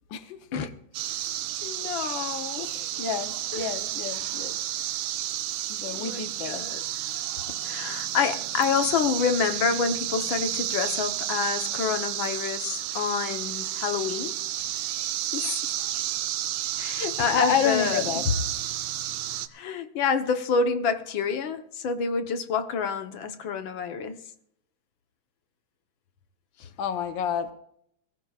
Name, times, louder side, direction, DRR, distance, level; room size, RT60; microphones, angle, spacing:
sound 1, 0.9-19.5, right 13 dB, 75° right, 2.2 m, -31 dB
voice 1, 1.6-2.7 3.5-3.7 5.9-6.8 7.6-14.7 15.3-15.7 16.8-18.0 19.5-24.2, left 6 dB, 65° left, 7 dB, 1.2 m, -28 dB
voice 2, 2.6-4.6 5.7-6.7 17.2-18.4 26.8-27.5, left 8 dB, 85° left, 9 dB, 1.0 m, -29 dB
22.5 x 15.5 x 2.4 m, 0.70 s
omnidirectional pair, 3.5 m